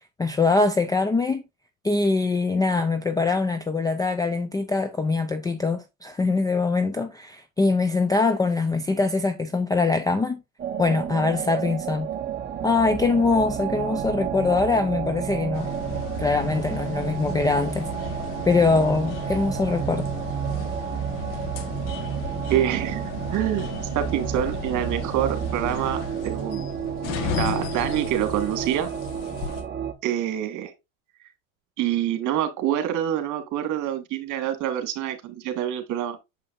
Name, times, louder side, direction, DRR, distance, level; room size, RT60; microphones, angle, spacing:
voice 1, 0.2-1.4 1.8-10.4 10.8-12.1 12.6-15.7 16.2-17.9 18.4-20.1, left 3 dB, 10° left, 0.4 m, -23 dB
sound 1, 10.6-29.9, right 8 dB, 25° right, 0.9 m, -31 dB
sound 2, 15.5-29.6, left 6 dB, 50° left, 1.5 m, -35 dB
voice 2, 22.5-23.0 23.3-23.7 24.0-26.6 27.3-28.9 30.0-30.7 31.8-36.2, right 11 dB, 45° right, 1.8 m, -26 dB
7.0 x 5.6 x 2.5 m
supercardioid pair, 115°, 40 cm